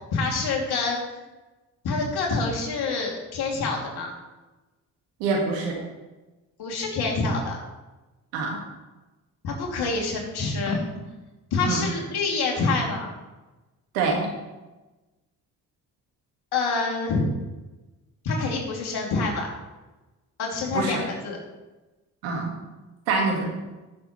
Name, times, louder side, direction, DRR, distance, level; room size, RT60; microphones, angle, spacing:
voice 1, 0.1-1.2 1.8-4.1 6.6-7.6 9.4-10.8 11.5-13.1 16.5-17.2 18.2-19.5 20.4-21.4, left 3 dB, 70° left, -1 dB, 2.8 m, -26 dB
voice 2, 5.2-5.8 8.3-8.6 11.7-11.9 13.9-14.3 20.7-21.0 22.2-22.5 23.1-23.5, right 3 dB, 90° right, 0 dB, 2.0 m, -25 dB
15.0 x 6.6 x 3.2 m, 1.1 s
hypercardioid pair, 50°, 41 cm